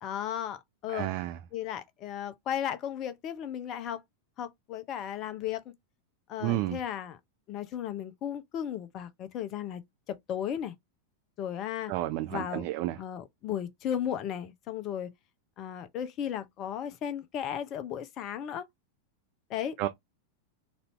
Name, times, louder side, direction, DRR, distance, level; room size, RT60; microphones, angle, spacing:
voice 1, 0.0-1.1 1.5-4.0 4.4-5.7 6.3-7.2 7.5-9.8 10.1-10.7 11.4-11.9 12.3-12.6 13.0-15.1 15.6-18.7 19.5-19.8, left 10 dB, 35° left, 0.7 m, -35 dB
voice 2, 0.9-1.4 6.4-6.8 11.9-13.0 19.8-19.9, right 15 dB, 45° right, 0.5 m, -31 dB
4.1 x 2.6 x 3.1 m
figure-of-eight pair, 90°, 0 cm